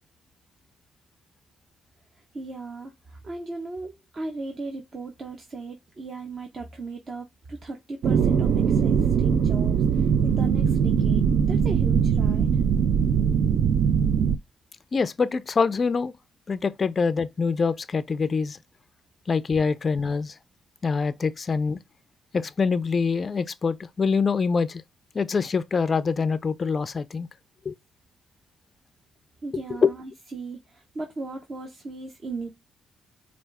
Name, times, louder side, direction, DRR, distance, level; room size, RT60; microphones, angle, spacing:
voice 1, 2.3-12.5 29.4-32.5, right 3 dB, 40° right, 0.8 m, -37 dB
sound 1, 8.0-14.4, right 7 dB, 70° right, 0.4 m, -21 dB
voice 2, 14.9-16.1 16.5-18.6 19.3-20.3 20.8-21.8 22.3-24.8 25.1-27.3 27.7-27.8 29.5-29.9, left 5 dB, 35° left, 0.3 m, -25 dB
4.6 x 2.4 x 3.3 m
cardioid pair, 90°, 0 cm